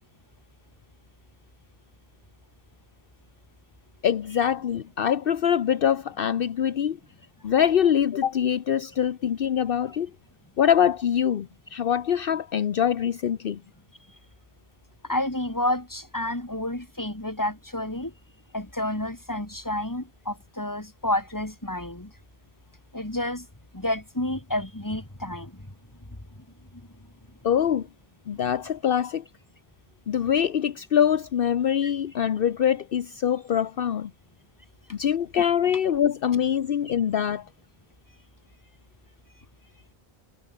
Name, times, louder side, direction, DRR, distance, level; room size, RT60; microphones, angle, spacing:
voice 1, 4.0-7.0 7.4-10.1 10.6-13.6 27.4-27.9 28.3-29.2 30.1-34.1 34.9-37.4, left 9 dB, 65° left, 0.9 m, -24 dB
voice 2, 15.0-18.1 18.5-22.1 22.9-23.5 23.7-25.7 26.1-26.2 26.7-26.8 31.8-31.9, left 1 dB, 20° left, 3.0 m, -30 dB
omnidirectional pair, 1.0 m